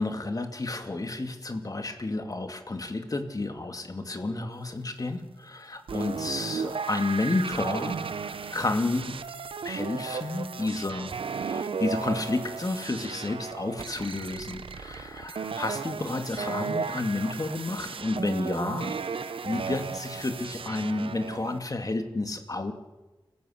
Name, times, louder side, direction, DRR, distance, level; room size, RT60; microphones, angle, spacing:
voice 1, 0.0-8.0 8.2-9.2 9.6-19.0 19.2-22.7, left 2 dB, 45° left, 6 dB, 2.6 m, -31 dB
sound 1, 5.9-21.6, right 5 dB, 85° right, 0.9 m, -35 dB
29.5 x 16.5 x 8.0 m, 1.2 s
cardioid pair, 60°, 9 cm